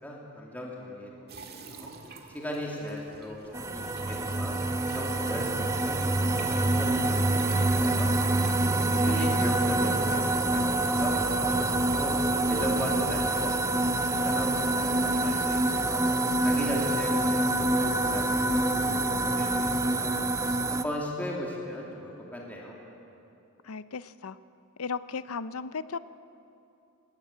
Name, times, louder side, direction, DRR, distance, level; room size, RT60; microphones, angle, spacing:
voice 1, 0.0-1.9 2.3-8.1 8.9-12.1 12.5-15.6 15.8-16.0 16.4-20.1 20.7-22.8, equal, 10° left, -3 dB, 2.8 m, -37 dB
sound 1, 1.3-12.2, right 4 dB, 50° right, 1.8 m, -49 dB
sound 2, 3.5-20.8, right 2 dB, 15° right, 0.6 m, -26 dB
voice 2, 8.9-9.4 23.6-24.4 24.8-26.0, left 5 dB, 80° left, 15 dB, 0.6 m, -36 dB
20.5 x 18.0 x 8.4 m, 2.8 s
head